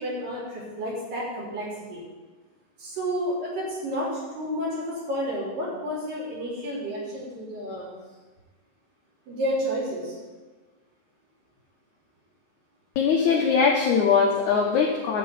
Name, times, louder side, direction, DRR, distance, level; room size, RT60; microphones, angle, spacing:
voice 1, 0.0-2.0 2.8-7.9 9.3-10.2, equal, 55° right, -6 dB, 5.3 m, -31 dB
voice 2, 13.0-15.2, left 6 dB, 75° left, 0 dB, 1.8 m, -21 dB
11.5 x 5.7 x 8.6 m, 1.3 s
omnidirectional pair, 4.8 m